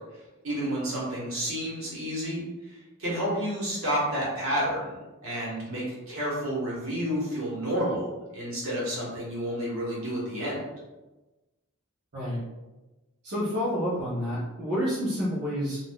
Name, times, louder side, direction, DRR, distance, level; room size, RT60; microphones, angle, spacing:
voice 1, 0.4-10.6, equal, 65° right, -6 dB, 1.3 m, -30 dB
voice 2, 13.2-15.8, equal, 45° right, -11 dB, 0.8 m, -29 dB
3.5 x 2.6 x 2.3 m, 1.1 s
head